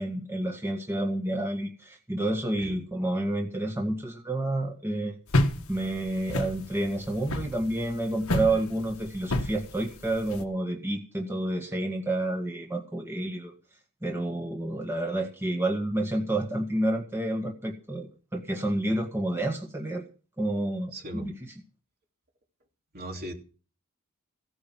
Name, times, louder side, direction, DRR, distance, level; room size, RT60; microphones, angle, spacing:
voice 1, 0.0-5.2 5.7-13.5 14.0-20.0 20.4-21.5, right 1 dB, 10° right, 2 dB, 1.7 m, -29 dB
sound 1, 5.3-10.4, left 1 dB, 70° left, 1.6 m, -30 dB
voice 2, 20.9-21.3 22.9-23.3, equal, 45° right, 2 dB, 3.1 m, -38 dB
16.0 x 10.0 x 5.9 m, 0.38 s
head